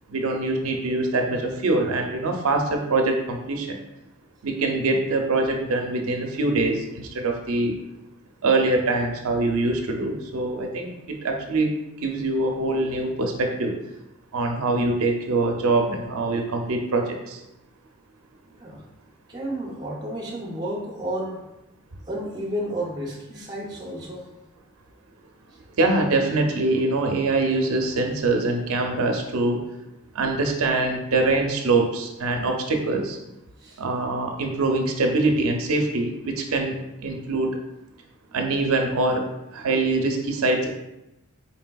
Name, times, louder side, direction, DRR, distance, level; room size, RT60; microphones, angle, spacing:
voice 1, 0.1-3.8 4.4-7.7 8.4-11.7 12.0-13.7 14.3-17.4 25.8-29.6 30.1-33.2 33.8-37.5 38.3-39.2 39.5-40.7, right 2 dB, 75° right, 3 dB, 0.5 m, -24 dB
voice 2, 19.3-21.4 22.1-24.3 25.5-25.6 33.6-33.8, right 1 dB, 20° right, -2 dB, 0.5 m, -32 dB
4.4 x 3.3 x 2.3 m, 0.93 s
head